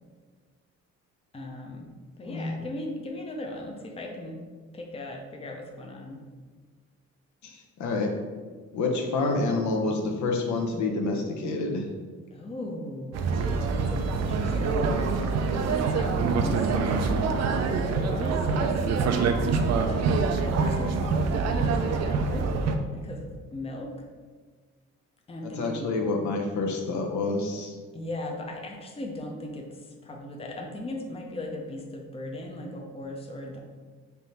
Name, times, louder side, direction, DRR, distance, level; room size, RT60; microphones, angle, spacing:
voice 1, 1.3-1.9 2.2-4.4 4.7-6.2 12.3-17.2 17.9-20.1 20.4-22.5 22.9-23.9 25.3-25.9 27.9-33.6, left 1 dB, 20° left, 1 dB, 0.6 m, -38 dB
voice 2, 2.2-2.5 7.4-8.1 8.7-11.9 25.4-27.7, left 3 dB, 75° left, 1 dB, 0.7 m, -28 dB
sound 1, 13.1-22.8, right 4 dB, 60° right, 0.5 m, -25 dB
3.4 x 2.7 x 4.2 m, 1.5 s
cardioid pair, 90°, 30 cm